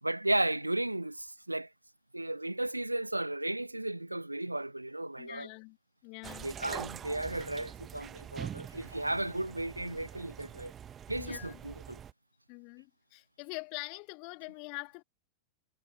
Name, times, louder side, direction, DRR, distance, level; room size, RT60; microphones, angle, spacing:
voice 1, 0.0-1.7 2.1-5.5 6.4-10.7 11.1-12.0, right 1 dB, 85° right, 0.9 m, -34 dB
voice 2, 5.2-5.8 6.0-6.5 11.2-11.6 12.5-15.0, left 35 dB, 45° left, 2.0 m, -44 dB
sound 1, 6.2-12.1, right 9 dB, 25° right, 1.0 m, -44 dB
figure-of-eight pair, 90°, 0 cm